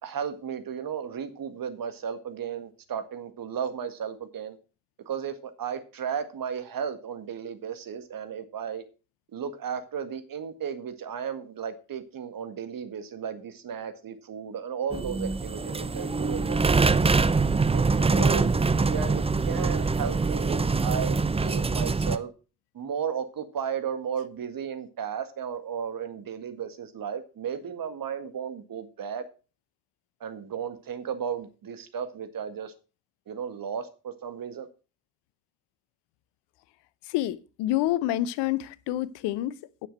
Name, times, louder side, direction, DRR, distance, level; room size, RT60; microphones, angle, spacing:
voice 1, 0.0-4.6 5.0-8.8 9.3-17.2 17.7-18.5 18.9-22.3 22.7-29.3 30.2-32.7 33.3-34.7, right 7 dB, 50° right, 1.8 m, -34 dB
sound 1, 14.9-22.2, right 4 dB, 15° right, 0.7 m, -24 dB
voice 2, 37.1-39.9, left 14 dB, 65° left, 0.8 m, -28 dB
9.9 x 6.9 x 6.0 m
figure-of-eight pair, 40°, 45 cm